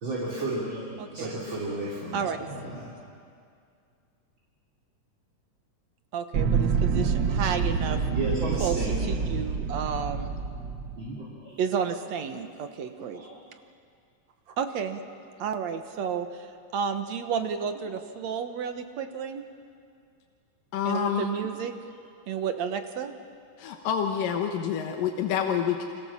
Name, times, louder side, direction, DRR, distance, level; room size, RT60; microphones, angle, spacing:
voice 1, 0.0-2.9 6.9-7.1 8.1-9.1 11.0-11.6 13.1-13.4, right 2 dB, 35° right, -5 dB, 4.2 m, -33 dB
voice 2, 1.0-1.4 2.1-2.5 6.1-8.0 8.6-10.3 11.6-13.3 14.6-15.0 15.4-16.5 16.7-19.4 20.9-21.7 22.3-23.1, right 7 dB, 65° right, 7 dB, 2.3 m, -31 dB
sound 1, 6.3-11.0, right 5 dB, 80° right, 1.0 m, -27 dB
voice 3, 20.7-21.2 23.6-25.8, left 8 dB, 85° left, 3 dB, 2.9 m, -27 dB
29.0 x 25.0 x 7.4 m, 2.3 s
omnidirectional pair, 3.8 m